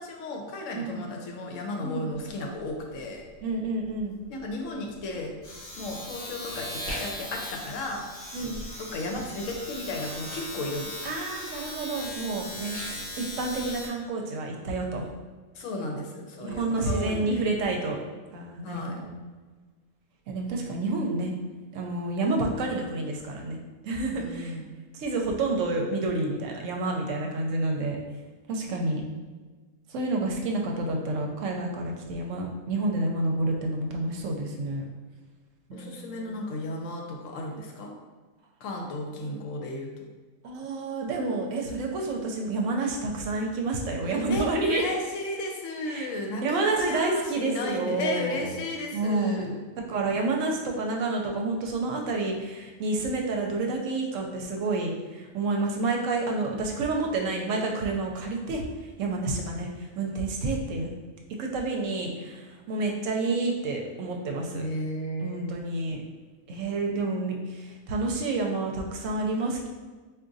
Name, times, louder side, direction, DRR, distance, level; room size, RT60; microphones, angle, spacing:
voice 1, 0.0-3.2 4.3-5.3 5.8-8.1 8.8-10.9 15.5-17.4 18.6-19.0 24.2-24.7 28.7-29.2 35.7-37.9 38.6-39.9 44.1-49.6 64.5-65.6, left 1 dB, 75° left, 1 dB, 0.9 m, -34 dB
voice 2, 0.7-1.1 1.8-2.1 3.4-4.2 8.3-8.6 11.0-12.8 13.2-15.1 16.4-18.0 18.3-19.1 20.3-21.3 21.7-24.6 24.9-28.0 28.5-29.0 29.9-34.8 35.7-36.4 40.4-44.8 45.9-46.1 46.4-48.6 48.9-49.4 49.9-58.7 59.0-60.9 61.4-64.6 65.2-66.0 66.5-69.7, right 2 dB, 75° right, 1 dB, 0.9 m, -29 dB
Domestic sounds home sounds, 2.1-2.3 2.6-13.9, left 1 dB, 45° left, 1.0 m, -38 dB
4.7 x 2.5 x 2.6 m, 1.4 s
omnidirectional pair, 1.4 m